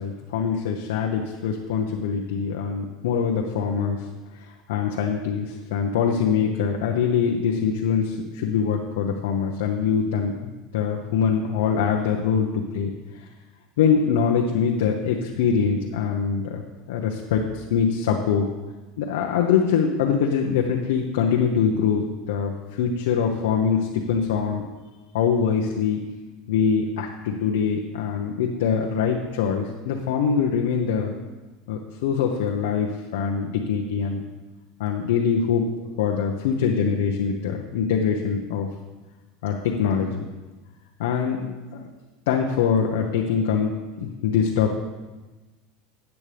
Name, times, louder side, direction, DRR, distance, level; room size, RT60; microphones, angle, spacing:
voice 1, 0.0-4.1 4.3-10.3 10.7-13.3 13.8-16.6 16.9-18.5 19.0-24.6 25.1-26.0 26.5-31.1 31.7-34.2 34.8-35.7 36.0-38.7 39.4-40.1 41.0-41.8 42.3-43.7 44.0-44.7, left 6 dB, 85° left, 1 dB, 0.9 m, -23 dB
12.5 x 8.4 x 3.4 m, 1.2 s
supercardioid pair, 125°, 0 cm